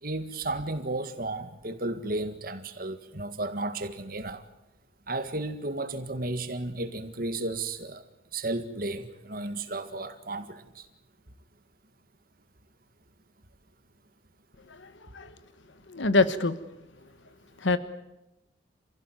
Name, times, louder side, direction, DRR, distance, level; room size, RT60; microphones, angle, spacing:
voice 1, 0.0-4.5 5.1-8.0 8.3-10.9, right 2 dB, 50° right, 1.8 m, -33 dB
voice 2, 14.7-15.3 15.9-16.6 17.6-17.8, left 3 dB, 80° left, 1.2 m, -25 dB
28.5 x 16.5 x 9.3 m
head